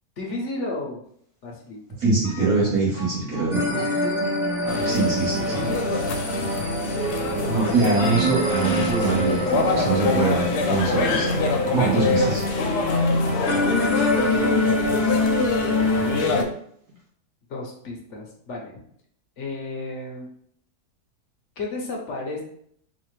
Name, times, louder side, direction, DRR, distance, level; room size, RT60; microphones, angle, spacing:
voice 1, 0.2-1.0 1.4-1.8 3.7-4.2 4.6-5.8 6.7-8.2 14.2-15.3 17.5-18.7 19.4-20.3 21.6-22.4, left 2 dB, 60° left, 0 dB, 0.9 m, -34 dB
voice 2, 2.0-3.7 4.8-5.7 7.5-11.4 11.7-12.4, right 3 dB, 70° right, -6 dB, 2.0 m, -23 dB
sound 1, 2.2-2.7 2.9-4.2 4.7-5.2 5.5-6.0 6.3-7.9 8.4-8.8 9.3-10.0 10.3-10.7 11.1-11.5 12.0-12.4 12.9-13.3 13.7-14.8 15.4-15.5 16.3-16.4 16.9-17.0, right 4 dB, 90° right, 2.0 m, -39 dB
sound 2, 3.5-16.4, left 1 dB, 5° right, 0.4 m, -25 dB
sound 3, 4.7-16.4, left 4 dB, 85° left, 1.2 m, -26 dB
4.2 x 2.4 x 3.1 m, 0.66 s
omnidirectional pair, 1.7 m